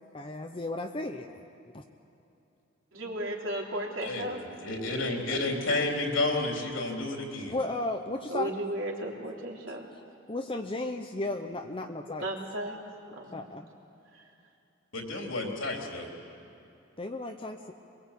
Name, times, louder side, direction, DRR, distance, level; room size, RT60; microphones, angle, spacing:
voice 1, 0.1-1.3 1.7-1.8 7.5-8.5 10.3-12.3 13.3-13.7 17.0-17.7, left 2 dB, 25° left, 4 dB, 0.8 m, -34 dB
voice 2, 2.9-4.4 8.3-9.9 12.2-12.8 13.1-13.5 14.1-14.2, right 1 dB, 75° right, -1 dB, 3.5 m, -35 dB
voice 3, 4.0-4.3 4.6-7.5 14.9-16.1, left 2 dB, 75° left, 1 dB, 3.8 m, -30 dB
24.0 x 21.5 x 8.5 m, 2.8 s
head